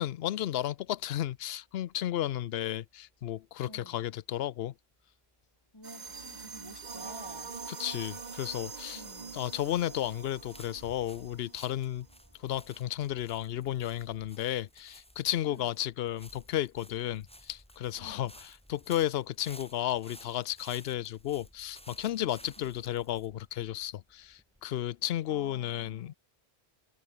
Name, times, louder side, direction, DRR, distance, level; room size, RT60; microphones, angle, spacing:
voice 1, 0.0-4.7 7.7-9.0 9.3-12.1 12.4-26.1, left 12 dB, 75° left, 0.8 m, -33 dB
voice 2, 3.6-4.1 5.7-7.5 8.9-9.4 15.5-15.7 18.0-18.3 22.4-22.8 25.3-26.2, left 1 dB, 20° left, 4.8 m, -52 dB
sound 1, 5.8-12.1, right 5 dB, 45° right, 1.3 m, -44 dB
sound 2, 6.1-7.7 8.0-11.1, right 2 dB, 65° right, 5.5 m, -60 dB
sound 3, 9.2-24.7, equal, 5° left, 3.4 m, -56 dB
omnidirectional pair, 1.1 m